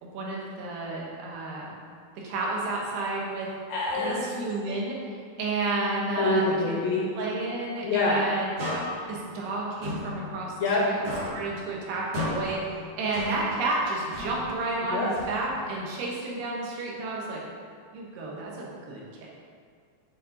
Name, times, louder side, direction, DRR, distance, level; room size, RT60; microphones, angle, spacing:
voice 1, 0.0-1.7 2.1-3.5 3.9-6.8 7.2-8.5 9.1-10.5 10.8-11.0 11.3-17.4 17.9-19.3, right 2 dB, 75° right, -3 dB, 3.1 m, -31 dB
voice 2, 3.7-4.2 6.2-7.1 7.8-8.3 10.6-10.9 14.9-15.1, left 2 dB, 85° left, -4 dB, 2.0 m, -25 dB
sound 1, 8.6-10.8 11.1-13.7 14.1-15.8, left 1 dB, 50° right, 2.7 m, -36 dB
9.0 x 4.3 x 3.9 m, 2.1 s
omnidirectional pair, 5.1 m